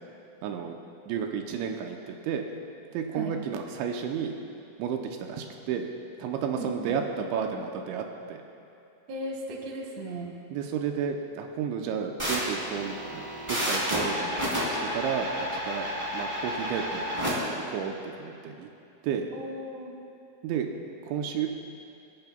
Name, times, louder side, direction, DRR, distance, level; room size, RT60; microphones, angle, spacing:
voice 1, 0.4-0.8 1.1-2.5 2.9-4.3 4.8-5.0 5.3-5.9 6.2-8.4 10.5-17.1 17.7-18.7 19.0-19.3 20.4-20.7 21.0-21.5, right 7 dB, 85° right, 3 dB, 2.9 m, -32 dB
voice 2, 6.5-7.0 9.1-10.3 19.3-20.0, equal, 65° right, 1 dB, 1.9 m, -36 dB
sound 1, 12.2-17.3, equal, 10° right, 1.8 m, -30 dB
25.0 x 10.5 x 2.2 m, 2.7 s
omnidirectional pair, 5.4 m